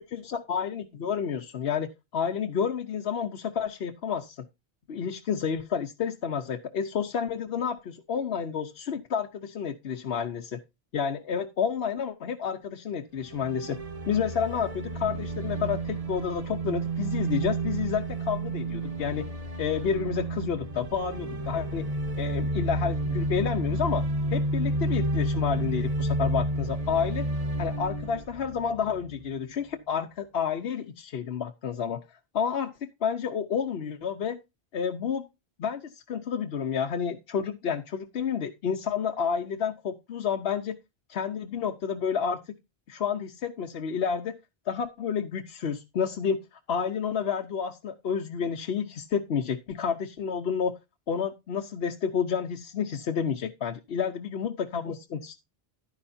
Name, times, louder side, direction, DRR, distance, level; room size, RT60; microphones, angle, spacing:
voice 1, 0.0-4.4 4.9-10.6 10.9-13.8 14.1-19.3 19.6-21.9 22.2-24.0 24.3-27.2 27.6-32.0 32.3-34.4 34.7-35.2 35.6-40.7 41.1-42.4 42.9-44.4 44.7-50.8 51.1-55.3, left 7 dB, 75° left, 5 dB, 1.0 m, -30 dB
sound 1, 13.2-29.3, right 2 dB, 35° right, 1.2 m, -31 dB
11.5 x 9.9 x 2.6 m, 0.24 s
omnidirectional pair, 1.0 m